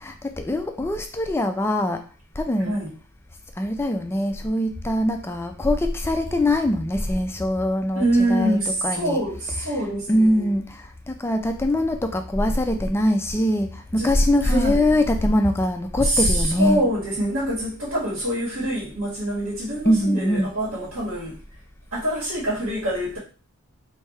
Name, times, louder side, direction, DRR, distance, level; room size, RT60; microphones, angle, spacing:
voice 1, 0.0-2.0 2.4-2.8 3.6-8.6 8.8-9.2 9.6-9.7 10.1-16.8 19.9-20.5, left 1 dB, 10° left, 6 dB, 0.3 m, -22 dB
voice 2, 7.9-10.5 14.0-14.1 14.4-14.8 16.0-21.4 21.9-23.2, right 1 dB, 70° right, -7 dB, 1.7 m, -25 dB
3.4 x 2.8 x 4.3 m, 0.37 s
head